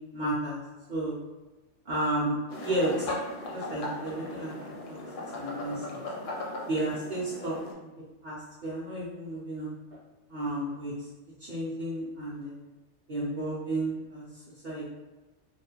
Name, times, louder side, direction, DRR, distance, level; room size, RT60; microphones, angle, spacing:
voice 1, 0.1-0.6 0.9-1.2 1.8-3.1 3.5-5.0 5.3-6.0 6.7-7.9 8.2-9.8 10.3-11.1 11.4-12.6 13.1-14.8, right 1 dB, 55° right, -9 dB, 0.6 m, -32 dB
sound 1, 2.5-7.7, left 2 dB, 60° left, 0.6 m, -38 dB
2.4 x 2.1 x 2.8 m, 1.1 s
omnidirectional pair, 1.2 m